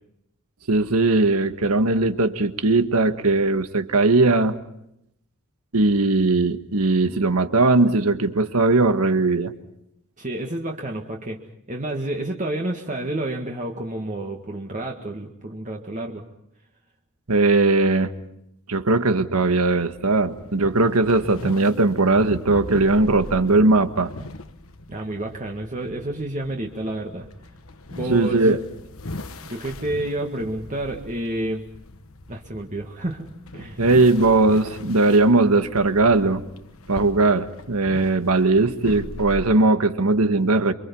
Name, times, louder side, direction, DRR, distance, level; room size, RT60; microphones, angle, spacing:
voice 1, 0.7-4.6 5.7-9.5 17.3-18.1 18.7-24.1 28.1-28.6 33.8-36.4 36.9-40.7, right 3 dB, 85° right, 9 dB, 1.6 m, -19 dB
voice 2, 10.2-11.4 11.7-16.2 24.9-27.3 27.9-28.4 29.4-31.6 32.3-33.3 33.5-33.8, right 1 dB, 35° right, 1 dB, 1.9 m, -29 dB
sound 1, 19.7-39.4, left 2 dB, 65° left, 1.4 m, -40 dB
28.5 x 24.5 x 5.5 m, 0.79 s
head